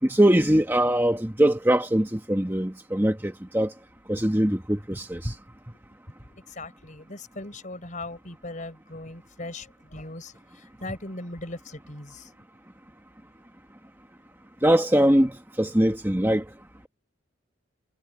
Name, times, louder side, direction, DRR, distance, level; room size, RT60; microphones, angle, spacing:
voice 1, 0.0-3.7 4.1-5.3 14.6-16.4, right 1 dB, 10° right, 1.3 m, -22 dB
voice 2, 6.3-12.3, left 2 dB, 40° left, 4.3 m, -39 dB
head